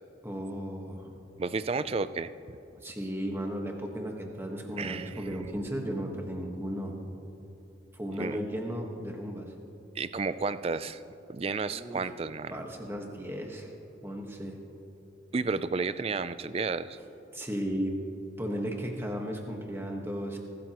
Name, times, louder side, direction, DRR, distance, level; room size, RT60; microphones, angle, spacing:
voice 1, 0.2-1.2 2.8-6.9 7.9-9.5 11.7-12.0 12.5-13.7 14.0-14.6 17.3-18.0 18.4-20.4, equal, 10° right, 1 dB, 1.4 m, -35 dB
voice 2, 1.4-2.3 4.8-5.3 8.2-8.4 10.0-11.0 11.3-12.6 15.3-17.0, right 4 dB, 30° right, 14 dB, 0.3 m, -32 dB
24.5 x 12.5 x 3.0 m, 3.0 s
head